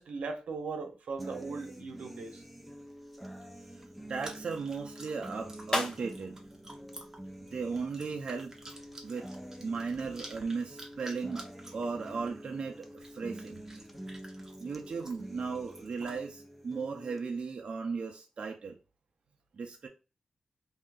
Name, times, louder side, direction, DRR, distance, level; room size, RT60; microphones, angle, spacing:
voice 1, 0.0-2.4, right 4 dB, 90° right, 0.8 m, -38 dB
sound 1, 1.2-17.2, right 1 dB, ahead, 0.4 m, -47 dB
sound 2, 2.5-8.0, left 2 dB, 30° left, 0.7 m, -42 dB
Chewing mastication, 4.1-16.2, right 2 dB, 25° right, 0.8 m, -52 dB
voice 2, 4.1-6.4 7.5-8.5 9.0-9.3 9.6-11.5 11.7-13.7 14.6-18.8 19.5-19.9, right 5 dB, 55° right, 0.5 m, -36 dB
2.7 x 2.4 x 3.4 m
wide cardioid pair, 125°, 2 cm